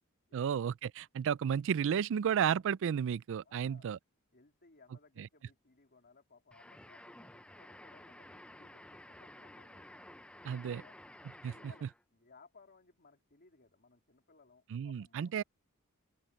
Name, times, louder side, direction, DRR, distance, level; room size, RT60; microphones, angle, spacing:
voice 1, 0.3-4.0 5.2-5.3 10.4-10.8 11.4-11.5 11.8-11.9 14.7-15.4, right 8 dB, 60° right, 0.3 m, -32 dB
voice 2, 3.4-3.9 4.3-9.9 10.5-11.0 11.4-15.3, left 4 dB, 50° left, 3.3 m, -63 dB
sound 1, 6.5-12.0, left 1 dB, 5° left, 0.5 m, -53 dB
open air
head